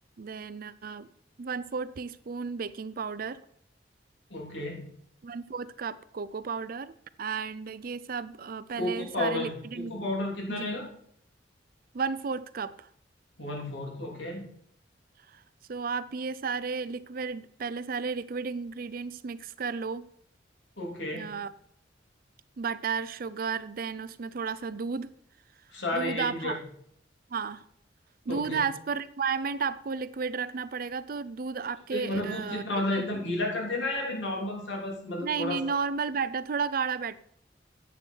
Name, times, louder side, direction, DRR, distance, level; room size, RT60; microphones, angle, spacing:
voice 1, 0.2-1.1 1.4-3.4 5.2-9.9 10.5-10.7 11.9-12.9 15.3-15.4 15.7-20.1 21.1-21.5 22.6-25.1 25.9-26.6 27.3-27.6 28.3-32.6 33.0-33.1 35.2-37.2, right 5 dB, 50° right, 16 dB, 0.5 m, -33 dB
voice 2, 4.3-4.9 8.8-10.9 13.4-14.5 20.8-21.3 25.7-26.6 28.3-28.6 31.9-35.6, left 1 dB, 80° left, -1 dB, 3.1 m, -32 dB
9.9 x 8.1 x 4.6 m, 0.66 s
head